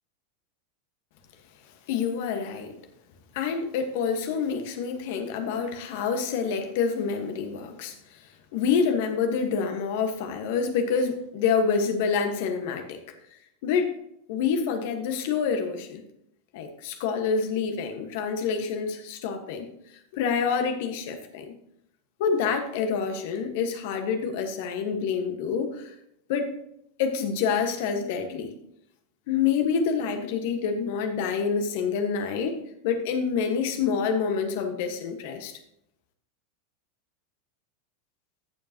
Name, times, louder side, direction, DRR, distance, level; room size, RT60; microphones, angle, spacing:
voice 1, 1.9-2.8 3.3-8.2 8.5-13.0 13.6-13.9 14.3-16.0 16.5-19.7 20.1-21.5 22.2-25.9 26.3-26.5 27.0-28.5 29.3-35.5, left 6 dB, 60° left, 6 dB, 1.5 m, -27 dB
14.0 x 7.3 x 3.0 m, 0.76 s
hypercardioid pair, 90°, 0 cm